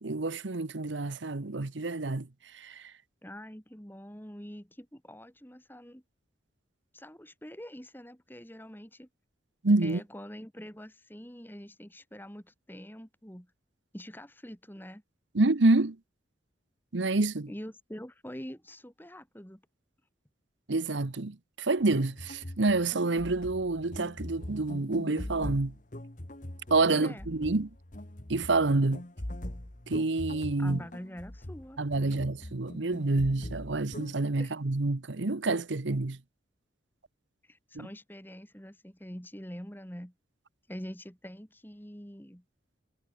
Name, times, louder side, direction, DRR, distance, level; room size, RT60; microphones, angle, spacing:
voice 1, 0.0-2.3 2.5-2.8 9.6-10.0 15.3-16.0 16.9-17.5 20.7-25.7 26.7-27.7 28.3-29.0 29.9-30.8 31.8-36.2 37.7-37.9, right 2 dB, 75° right, 1.0 m, -28 dB
voice 2, 3.2-6.0 6.9-9.1 9.8-13.5 13.9-15.0 17.5-19.6 27.0-27.3 30.6-32.2 34.4-34.5 37.4-40.1 40.7-42.4, equal, 10° left, 3.8 m, -45 dB
sound 1, 21.8-34.2, left 1 dB, 40° left, 1.9 m, -42 dB
head